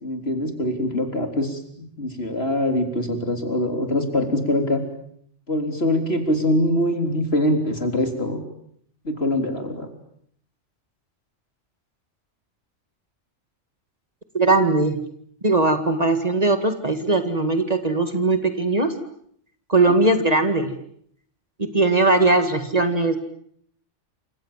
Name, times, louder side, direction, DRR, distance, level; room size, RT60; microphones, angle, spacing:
voice 1, 0.0-4.8 5.5-8.4 9.0-9.9 19.9-20.0, left 1 dB, 55° left, 5 dB, 4.1 m, -23 dB
voice 2, 14.3-15.0 15.4-18.9 19.7-20.7 21.6-23.2, right 2 dB, 30° right, 8 dB, 2.2 m, -19 dB
29.0 x 26.0 x 7.5 m, 0.67 s
omnidirectional pair, 1.3 m